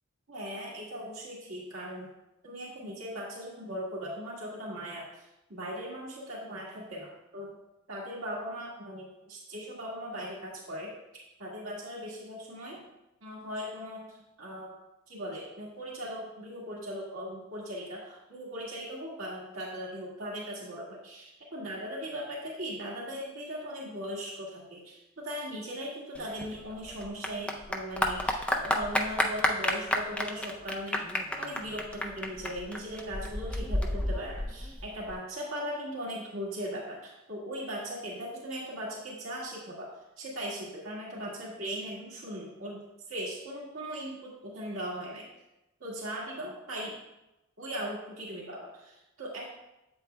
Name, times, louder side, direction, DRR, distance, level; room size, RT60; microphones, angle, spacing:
voice 1, 0.3-2.1 2.4-7.5 7.9-12.8 13.2-14.8 15.1-31.0 31.4-39.9 40.2-42.8 43.1-45.3 45.8-47.0 47.6-49.5, equal, 90° right, -5 dB, 1.9 m, -39 dB
Clapping / Applause, 26.1-35.1, left 1 dB, 5° left, 0.5 m, -31 dB
8.0 x 7.8 x 2.2 m, 0.94 s
head